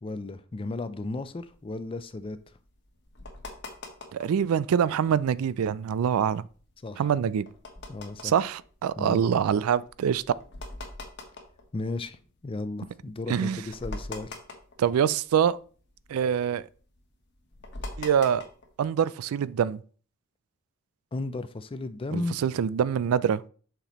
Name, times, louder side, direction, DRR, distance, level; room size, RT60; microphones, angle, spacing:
voice 1, 0.0-2.4 6.8-7.1 7.9-8.3 9.0-9.2 11.7-14.4 21.1-22.4, left 2 dB, 25° left, 0.4 m, -34 dB
sound 1, 1.2-4.5 4.9-5.5 5.9-12.6 13.0-13.1 13.4-15.5 15.8-18.8, left 2 dB, 55° left, 1.3 m, -43 dB
voice 2, 4.1-6.4 7.0-7.5 8.2-10.2 13.3-13.6 14.8-15.6 16.1-16.6 18.0-18.5 18.8-19.8 22.1-23.4, right 8 dB, 85° right, 0.3 m, -25 dB
6.8 x 5.9 x 3.0 m
head